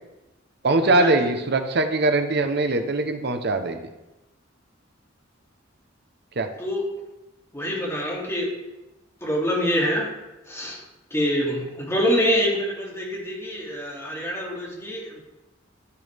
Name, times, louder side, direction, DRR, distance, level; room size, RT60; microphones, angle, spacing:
voice 1, 0.6-3.8 6.4-6.5, right 2 dB, 55° right, 7 dB, 0.9 m, -22 dB
voice 2, 7.5-8.5 9.2-10.1 10.5-10.8 11.1-15.2, equal, 15° left, -5 dB, 2.7 m, -25 dB
14.0 x 6.1 x 3.5 m, 1.0 s
head